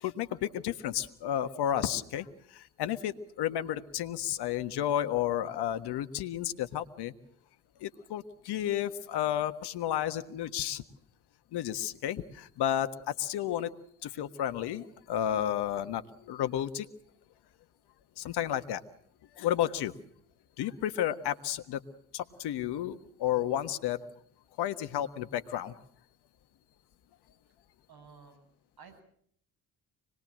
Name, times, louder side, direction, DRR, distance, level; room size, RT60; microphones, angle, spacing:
voice 1, 0.0-7.1 7.8-10.8 11.5-13.7 14.0-16.9 18.2-18.8 19.4-19.9 20.6-21.8 22.1-24.0 24.6-25.7, left 11 dB, 70° left, 10 dB, 1.6 m, -32 dB
voice 2, 27.9-28.5 28.8-29.0, right 5 dB, 60° right, 10 dB, 7.9 m, -53 dB
25.5 x 20.5 x 7.6 m, 0.66 s
hypercardioid pair, 55°, 42 cm